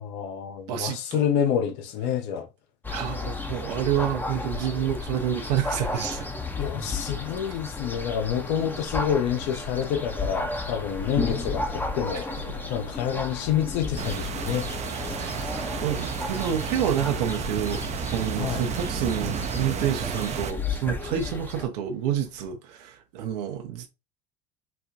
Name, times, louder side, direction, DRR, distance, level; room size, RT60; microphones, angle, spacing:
voice 1, 0.0-2.5 4.5-4.9 6.5-12.3 12.7-14.7 18.4-18.6, left 9 dB, 65° left, 0.7 m, -28 dB
voice 2, 0.7-1.2 2.9-6.3 15.2-15.4 15.8-23.9, right 10 dB, 75° right, 0.7 m, -28 dB
sound 1, 2.8-21.7, left 3 dB, 10° left, 0.6 m, -33 dB
sound 2, 10.7-22.5, left 6 dB, 80° left, 1.7 m, -43 dB
sound 3, 14.0-20.5, right 7 dB, 35° right, 0.5 m, -32 dB
4.2 x 2.2 x 2.6 m
hypercardioid pair, 75°, 21 cm